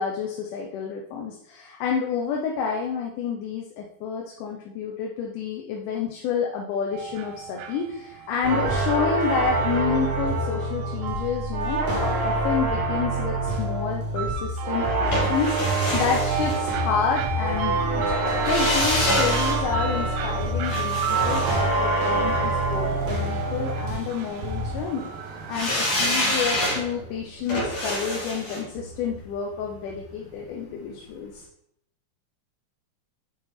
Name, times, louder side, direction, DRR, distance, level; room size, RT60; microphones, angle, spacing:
voice 1, 0.0-18.0 18.5-31.4, left 6 dB, 85° left, 0 dB, 2.4 m, -29 dB
sound 1, 6.9-26.2, right 6 dB, 90° right, 2.6 m, -33 dB
sound 2, 8.4-24.1 24.4-24.9, right 2 dB, 70° right, 3.0 m, -26 dB
sound 3, 15.1-17.2 18.3-22.5 25.5-30.5 30.8-30.9, left 1 dB, 40° left, 2.4 m, -28 dB
7.9 x 4.8 x 4.1 m, 0.74 s
omnidirectional pair, 3.6 m